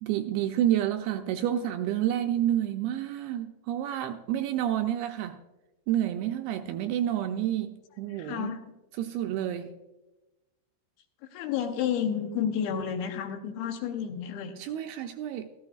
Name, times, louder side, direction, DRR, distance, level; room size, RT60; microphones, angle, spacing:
voice 1, 0.0-5.4 5.9-8.6 9.0-9.7 14.6-15.5, right 11 dB, 80° right, 2.3 m, -29 dB
voice 2, 8.1-8.6 11.3-14.5, left 8 dB, 75° left, 2.6 m, -31 dB
14.5 x 14.0 x 2.4 m
omnidirectional pair, 4.8 m